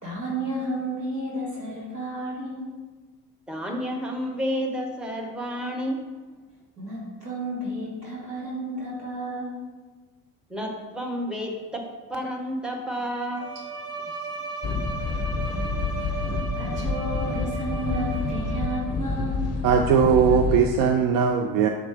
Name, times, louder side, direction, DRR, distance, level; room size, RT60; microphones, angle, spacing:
voice 1, 0.0-2.7 6.8-9.6 14.0-14.6 16.5-19.5, right 1 dB, 90° right, -6 dB, 1.7 m, -32 dB
voice 2, 3.5-6.0 10.5-13.5 14.7-14.8, equal, ahead, 1 dB, 0.9 m, -30 dB
Bowed string instrument, 13.3-19.1, right 4 dB, 30° right, 1.3 m, -36 dB
sound 1, 14.6-20.7, left 4 dB, 35° left, 0.6 m, -28 dB
voice 3, 19.6-21.7, right 7 dB, 50° right, 5 dB, 0.5 m, -19 dB
6.8 x 4.3 x 3.4 m, 1.3 s
figure-of-eight pair, 55°, 46 cm